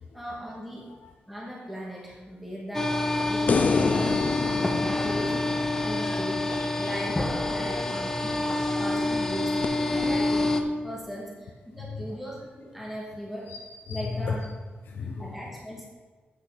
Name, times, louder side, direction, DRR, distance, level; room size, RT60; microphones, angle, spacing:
voice 1, 0.1-0.9 1.3-4.2 4.9-5.5 5.8-6.4 6.8-7.2 7.5-8.5 8.8-9.6 9.9-13.5 13.9-14.4 15.2-15.8, equal, 5° right, -4 dB, 2.1 m, -38 dB
sound 1, 2.7-10.6, left 2 dB, 15° left, 0.9 m, -27 dB
sound 2, 3.5-6.8 9.6-9.7, left 5 dB, 50° left, 0.5 m, -28 dB
voice 2, 5.8-7.0 7.6-8.0 8.6-9.0 10.2-10.3 13.5-14.3 14.9-15.3, left 5 dB, 85° left, 1 dB, 0.8 m, -36 dB
8.9 x 6.2 x 5.8 m, 1.4 s
wide cardioid pair, 135°, 3 cm